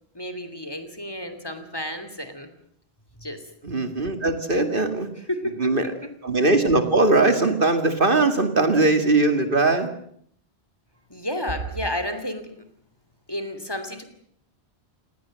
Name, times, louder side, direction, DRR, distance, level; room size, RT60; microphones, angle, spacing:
voice 1, 0.1-2.5 3.2-3.4 4.7-4.8 5.3-6.1 11.1-12.7 13.3-14.0, left 1 dB, 20° left, 9 dB, 3.1 m, -31 dB
voice 2, 3.6-5.1 5.6-5.9 6.2-9.9, right 2 dB, 55° right, 8 dB, 2.5 m, -20 dB
29.5 x 19.5 x 7.7 m, 0.66 s
omnidirectional pair, 1.1 m